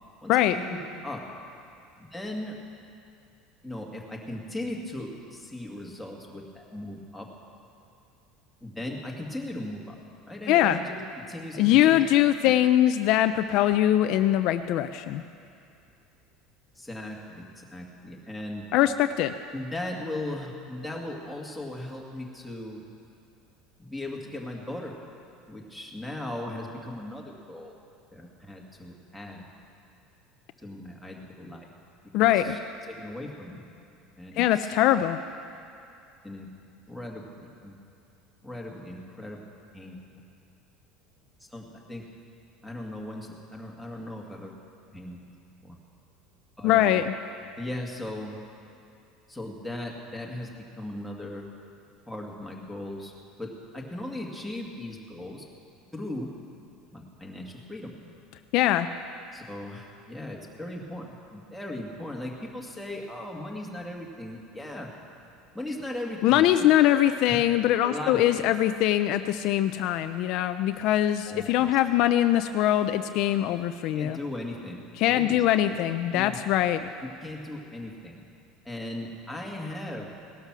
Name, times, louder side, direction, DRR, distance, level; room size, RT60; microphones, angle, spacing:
voice 1, 0.2-1.2 2.0-2.6 3.6-7.3 8.6-10.0 10.3-12.0 12.4-12.6 16.8-18.7 19.5-22.8 23.8-24.9 25.5-27.7 28.1-29.5 30.6-31.7 32.2-32.6 32.9-33.6 34.2-34.7 36.2-36.5 36.9-37.8 38.4-39.4 39.7-40.0 41.4-42.0 42.6-44.5 44.9-45.2 45.6-45.8 46.6-47.0 47.6-48.4 49.3-51.5 52.1-53.1 53.4-55.4 55.9-56.3 56.9-57.9 59.3-64.9 65.5-67.0 67.3-67.4 67.8-68.5 71.3-71.7 73.9-75.8 76.1-76.4 77.2-78.2 78.7-80.1, left 1 dB, ahead, -1 dB, 2.0 m, -38 dB
voice 2, 10.5-10.8 11.6-15.2 18.7-19.3 32.1-32.6 34.4-35.2 46.6-47.1 58.5-58.9 66.2-74.2 75.0-76.9, left 12 dB, 55° left, 9 dB, 0.5 m, -22 dB
18.0 x 12.5 x 6.1 m, 2.6 s
cardioid pair, 145°, 0 cm